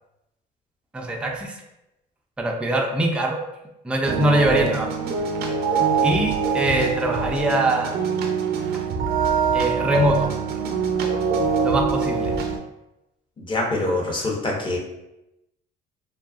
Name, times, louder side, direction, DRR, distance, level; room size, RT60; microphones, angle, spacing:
voice 1, 0.9-1.6 2.4-3.4 3.8-4.9 6.0-7.9 9.5-10.3 11.6-12.4, right 1 dB, 5° right, 1 dB, 0.3 m, -22 dB
sound 1, 4.0-12.6, right 6 dB, 65° right, 0.4 m, -24 dB
voice 2, 13.4-14.8, left 2 dB, 30° left, -1 dB, 0.7 m, -25 dB
2.7 x 2.3 x 2.3 m, 0.91 s
cardioid pair, 110°, 17 cm